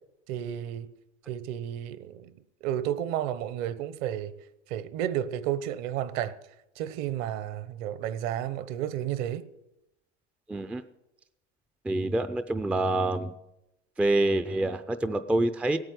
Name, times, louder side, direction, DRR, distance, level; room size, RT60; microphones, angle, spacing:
voice 1, 0.3-0.9 1.3-2.3 2.6-4.3 4.7-6.4 6.8-9.4, right 11 dB, 50° right, 1.0 m, -32 dB
voice 2, 10.5-10.8 11.8-13.3 14.0-15.8, right 2 dB, 5° right, 0.5 m, -26 dB
16.5 x 9.1 x 8.0 m
hypercardioid pair, 120°, 35 cm